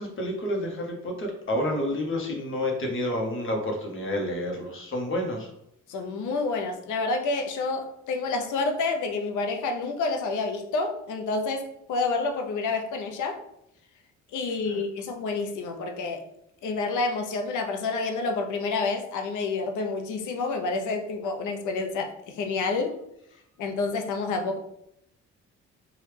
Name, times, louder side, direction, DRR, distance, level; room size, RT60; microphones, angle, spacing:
voice 1, 0.0-5.5 14.7-14.8, left 1 dB, 40° left, 0 dB, 0.9 m, -29 dB
voice 2, 5.9-13.4 14.3-16.2 16.6-22.9 23.6-24.6, left 3 dB, 80° left, 4 dB, 0.6 m, -29 dB
3.1 x 2.3 x 3.2 m, 0.78 s
cardioid pair, 90°, 30 cm